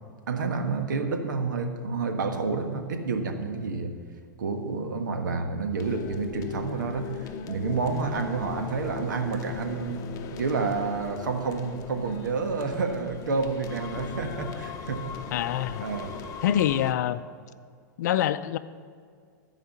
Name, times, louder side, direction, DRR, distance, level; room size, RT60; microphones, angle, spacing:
voice 1, 0.3-3.9 4.4-10.0 10.3-15.1 15.8-16.1, right 4 dB, 80° right, 5 dB, 1.4 m, -29 dB
sound 1, 5.8-16.9, left 6 dB, 35° left, 0.9 m, -39 dB
voice 2, 15.3-15.9 16.4-17.2 18.0-18.6, left 11 dB, 65° left, 14 dB, 0.5 m, -25 dB
14.5 x 4.9 x 7.3 m, 2.1 s
hypercardioid pair, 110°, 10 cm